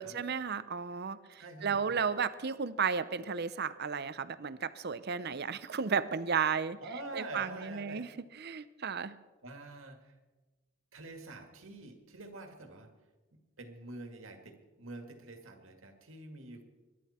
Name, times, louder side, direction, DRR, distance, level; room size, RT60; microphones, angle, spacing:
voice 1, 0.0-6.8 7.1-8.1 8.4-9.1, right 6 dB, 50° right, 15 dB, 0.6 m, -33 dB
voice 2, 1.4-2.0 6.8-8.1 9.4-10.2 10.9-13.0 13.3-16.6, right 2 dB, 70° right, 5 dB, 2.0 m, -46 dB
22.0 x 11.0 x 4.3 m, 1.2 s
head